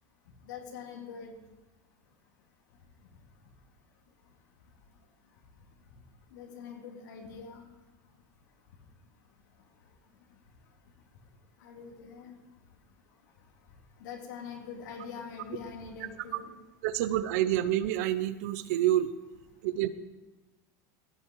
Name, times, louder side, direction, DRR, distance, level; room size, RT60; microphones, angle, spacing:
voice 1, 0.4-1.4 6.3-7.6 11.6-12.3 14.0-16.5, left 6 dB, 80° left, 0 dB, 3.3 m, -43 dB
voice 2, 16.8-19.1 19.6-19.9, right 13 dB, 55° right, 15 dB, 0.6 m, -28 dB
15.5 x 8.6 x 4.7 m, 1.1 s
supercardioid pair, 175°, 10 cm